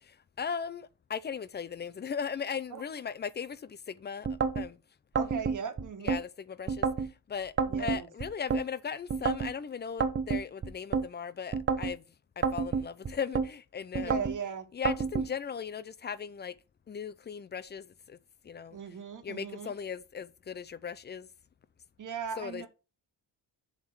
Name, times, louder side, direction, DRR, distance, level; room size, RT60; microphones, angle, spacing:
voice 1, 0.0-4.3 4.6-4.8 6.0-12.0 12.4-14.2 14.7-16.5 16.9-18.2 18.4-18.8 19.2-21.3 22.4-22.7, left 7 dB, 25° left, 0.4 m, -38 dB
sound 1, 4.2-4.7 5.2-6.2 6.7-7.1 7.6-8.6 9.1-9.5 10.0-11.1 11.5-11.9 12.4-13.5 13.9-14.4 14.9-15.3, right 5 dB, 30° right, 0.7 m, -29 dB
voice 2, 5.1-6.2 7.7-8.1 14.0-14.7 18.7-19.7 22.0-22.7, right 6 dB, 45° right, 1.7 m, -38 dB
7.3 x 3.7 x 6.1 m
cardioid pair, 130°, 41 cm